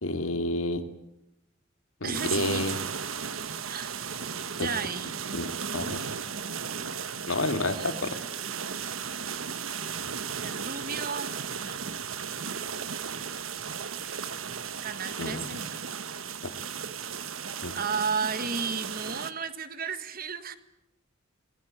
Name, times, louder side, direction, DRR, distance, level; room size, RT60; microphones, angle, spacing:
voice 1, 0.0-0.8 2.0-2.8 4.6-4.7 5.3-5.5 5.7-6.0 7.3-8.1 15.2-15.5 17.6-17.7, left 2 dB, 85° left, 7 dB, 2.4 m, -29 dB
voice 2, 2.0-2.8 3.7-3.9 4.5-5.3 7.5-8.2 10.4-11.8 14.8-15.8 17.7-20.6, right 5 dB, 45° right, 11 dB, 1.6 m, -34 dB
sound 1, 2.1-19.3, right 7 dB, 90° right, 1.4 m, -35 dB
25.5 x 21.5 x 8.9 m, 0.87 s
head